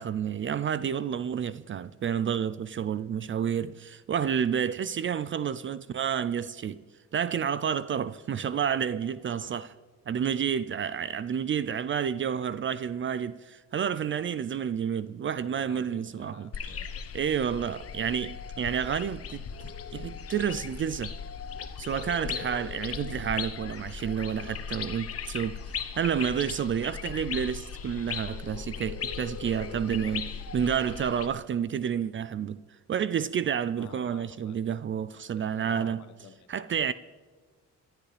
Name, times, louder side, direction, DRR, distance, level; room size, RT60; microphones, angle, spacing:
voice 1, 0.0-6.8 7.1-9.7 10.1-16.5 17.1-21.1 21.8-25.6 26.0-32.6 32.9-36.0 36.5-36.9, right 8 dB, 40° right, 0.5 m, -30 dB
voice 2, 15.4-17.1 33.8-34.6 35.3-36.8, left 8 dB, 70° left, 1.3 m, -50 dB
sound 1, 16.5-31.3, left 7 dB, 50° left, 1.1 m, -38 dB
27.5 x 13.0 x 3.4 m
cardioid pair, 90°, 30 cm